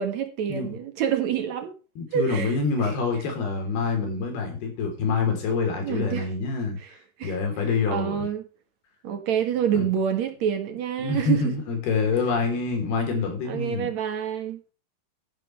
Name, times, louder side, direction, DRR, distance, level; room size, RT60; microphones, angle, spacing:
voice 1, 0.0-1.7 2.1-3.0 5.8-6.3 6.8-6.9 7.2-7.4 7.9-8.4 9.0-11.5 13.5-14.7, right 9 dB, 55° right, 2.3 m, -27 dB
voice 2, 2.0-6.8 7.2-8.3 9.7-9.9 11.0-13.9, left 4 dB, 85° left, 5.4 m, -26 dB
12.5 x 11.0 x 3.2 m
omnidirectional pair, 4.4 m